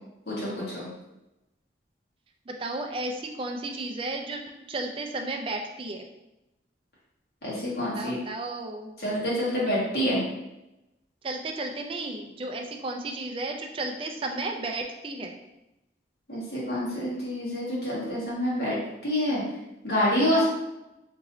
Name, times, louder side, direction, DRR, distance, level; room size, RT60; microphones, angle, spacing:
voice 1, 0.3-0.9 7.4-8.2 9.0-10.2 16.3-19.4 19.8-20.5, equal, 60° left, -7 dB, 1.5 m, -27 dB
voice 2, 2.5-4.4 4.7-6.0 7.9-8.9 11.2-15.4 20.3-20.5, right 2 dB, 30° right, 3 dB, 0.3 m, -33 dB
3.0 x 2.7 x 3.8 m, 0.94 s
head